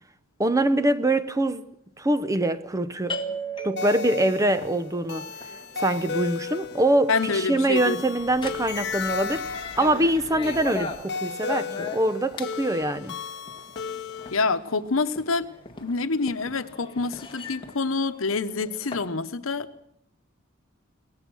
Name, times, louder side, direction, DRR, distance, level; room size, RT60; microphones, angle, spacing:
voice 1, 0.4-1.7 2.0-3.2 3.6-5.3 5.8-13.2, right 1 dB, 15° right, 0.7 m, -24 dB
sound 1, 3.1-19.1, left 1 dB, 25° left, 1.9 m, -39 dB
sound 2, 3.8-14.4, left 5 dB, 60° left, 1.2 m, -35 dB
voice 2, 7.1-8.0 9.8-10.0 14.3-15.5 15.8-19.7, left 4 dB, 85° left, 1.1 m, -27 dB
23.0 x 18.5 x 6.3 m
head